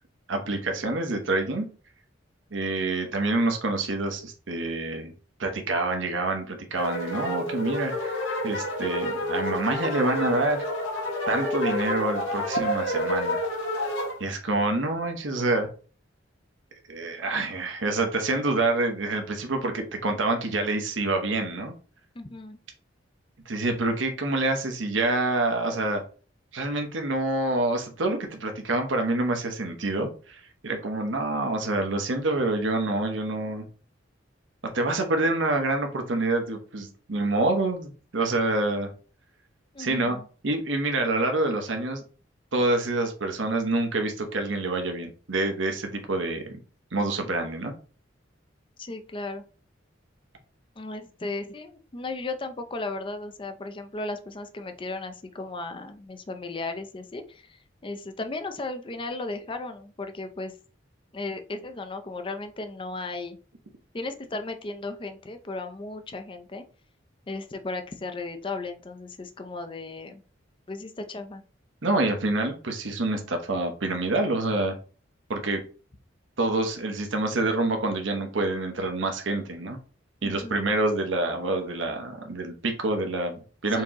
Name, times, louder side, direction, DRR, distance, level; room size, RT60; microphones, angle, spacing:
voice 1, 0.3-1.7 2.5-5.1 5.4-10.7 11.3-13.4 14.2-15.7 16.9-21.7 23.5-26.0 26.5-33.6 34.7-38.9 39.8-40.2 40.4-42.0 42.5-46.6 46.9-47.7 71.8-74.8 75.3-75.6 76.4-79.8 80.2-83.8, right 2 dB, 80° right, 4 dB, 0.9 m, -27 dB
sound 1, 6.7-14.1, left 1 dB, 75° left, 1.5 m, -29 dB
voice 2, 22.2-22.6 39.7-40.3 48.8-49.4 50.8-57.6 57.8-60.5 61.1-63.4 63.9-66.6 67.3-70.2 70.7-71.4 80.2-80.6 83.7-83.8, left 2 dB, 25° left, 7 dB, 0.5 m, -35 dB
4.6 x 2.9 x 3.6 m, 0.38 s
head